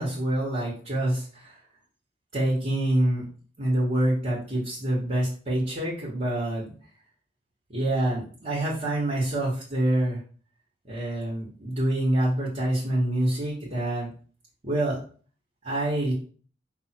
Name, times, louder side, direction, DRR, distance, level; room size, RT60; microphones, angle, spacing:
voice 1, 0.0-1.6 2.3-3.2 3.6-6.7 7.7-10.2 10.9-14.1 14.6-15.0 15.6-16.1, right 1 dB, 40° right, -5 dB, 1.2 m, -26 dB
5.2 x 2.1 x 4.3 m, 0.42 s
head